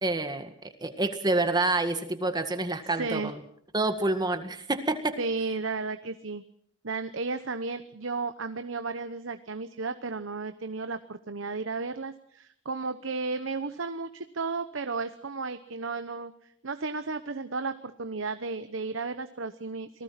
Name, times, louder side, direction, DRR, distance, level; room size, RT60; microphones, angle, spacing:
voice 1, 0.0-0.5 0.8-3.4 3.7-5.2, right 2 dB, 20° right, 8 dB, 1.8 m, -27 dB
voice 2, 2.9-3.3 5.2-6.4 6.8-20.0, right 4 dB, 90° right, 10 dB, 1.0 m, -34 dB
27.5 x 19.0 x 5.9 m, 0.67 s
head